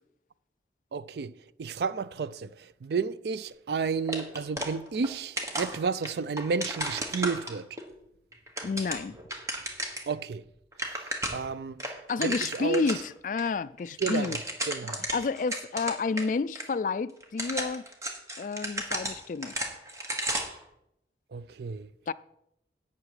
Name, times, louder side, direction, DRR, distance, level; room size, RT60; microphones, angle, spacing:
voice 1, 0.9-1.3 1.6-7.8 10.1-10.4 10.8-11.8 12.2-12.9 14.0-14.4 14.7-15.0 21.3-21.9, right 5 dB, 65° right, 0.4 m, -32 dB
sound 1, 4.1-5.1 5.4-7.8 8.3-10.1 10.4-10.5 10.7-11.5 11.8-13.0 13.4-13.5 13.8-16.3 16.5-16.6 17.2-20.6, right 1 dB, 15° right, 1.2 m, -34 dB
voice 2, 8.6-9.2 12.1-14.4 15.1-17.8 18.4-19.5 22.1-22.2, left 4 dB, 45° left, 0.3 m, -30 dB
11.5 x 8.2 x 4.9 m
head